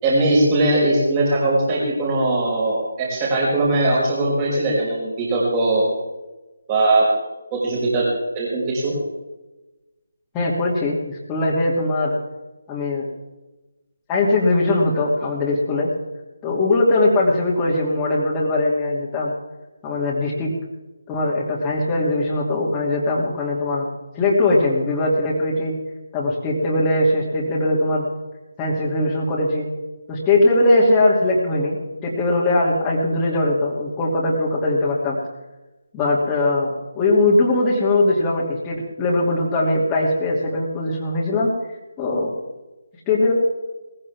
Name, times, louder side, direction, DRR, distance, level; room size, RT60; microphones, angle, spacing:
voice 1, 0.0-5.9 6.7-7.1 7.5-8.1 8.3-8.9, right 2 dB, 25° right, -5 dB, 5.9 m, -20 dB
voice 2, 10.3-12.2 12.7-13.1 14.1-15.9 16.4-19.3 19.8-20.5 21.1-23.9 24.1-25.7 26.1-28.0 28.6-29.7 30.1-35.2 35.9-36.7 36.9-41.5 42.0-42.3 43.1-43.3, left 2 dB, 15° left, -6 dB, 2.9 m, -20 dB
19.5 x 15.5 x 3.6 m, 1.1 s
figure-of-eight pair, 155°, 0 cm